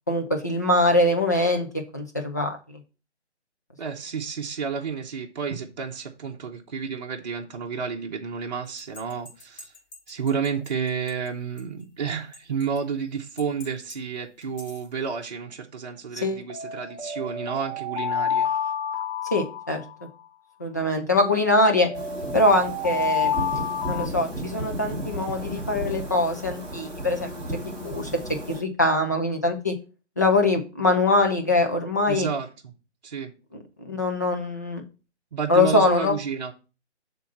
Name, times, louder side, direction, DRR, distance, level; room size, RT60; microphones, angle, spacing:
voice 1, 0.1-1.7 1.9-2.8 16.2-16.4 19.3-19.8 20.6-21.9 22.3-23.3 23.9-27.3 27.8-28.1 28.5-29.7 30.2-32.3 33.8-34.8 35.5-36.1, left 2 dB, 15° left, 0.5 m, -23 dB
voice 2, 3.8-9.7 10.1-18.5 32.1-32.7 33.0-33.3 35.3-36.5, right 6 dB, 35° right, 0.9 m, -31 dB
sound 1, 8.8-10.7 11.1-11.2 11.6-11.7 12.3-12.8 13.4-13.9 14.4-14.8 16.5-20.3 21.4-24.1, left 6 dB, 40° left, 1.6 m, -30 dB
sound 2, 21.9-28.6, right 1 dB, ahead, 1.2 m, -34 dB
6.9 x 3.8 x 5.8 m
figure-of-eight pair, 150°, 36 cm